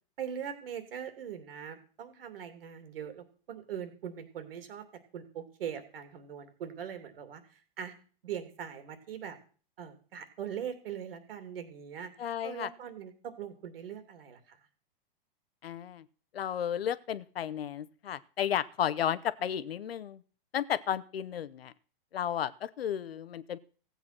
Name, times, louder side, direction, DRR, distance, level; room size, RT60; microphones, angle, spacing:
voice 1, 0.2-4.8 5.1-7.4 7.8-7.9 8.2-9.4 9.8-12.1 12.4-14.6, right 8 dB, 75° right, 10 dB, 2.8 m, -41 dB
voice 2, 12.2-12.7 15.6-16.0 16.3-20.2 20.5-21.7 22.1-23.6, left 9 dB, 85° left, 17 dB, 0.9 m, -33 dB
15.5 x 8.2 x 6.0 m, 0.41 s
hypercardioid pair, 120°, 29 cm